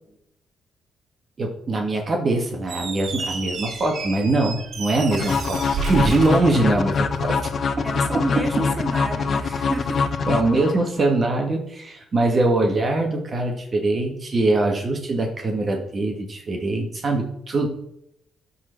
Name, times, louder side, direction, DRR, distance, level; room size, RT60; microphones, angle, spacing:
voice 1, 1.4-7.4 10.3-17.7, right 2 dB, 45° right, 1 dB, 1.9 m, -22 dB
Squeak, 2.6-7.3, right 5 dB, 60° right, 1.8 m, -31 dB
sound 1, 5.1-11.1, left 5 dB, 55° left, 0.8 m, -24 dB
voice 2, 7.8-10.1, right 1 dB, 10° right, 2 dB, 2.3 m, -30 dB
12.0 x 4.4 x 4.6 m, 0.76 s
supercardioid pair, 60°, 0 cm